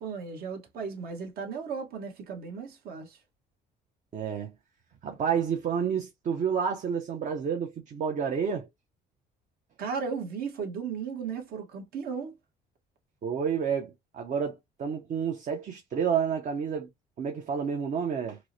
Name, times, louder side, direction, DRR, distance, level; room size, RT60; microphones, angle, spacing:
voice 1, 0.0-3.2 9.8-12.4, right 5 dB, 65° right, 1.3 m, -35 dB
voice 2, 4.1-4.5 5.0-8.7 13.2-16.9 17.2-18.4, right 7 dB, 45° right, 0.7 m, -30 dB
4.5 x 2.1 x 2.7 m
cardioid pair, 110°, 17 cm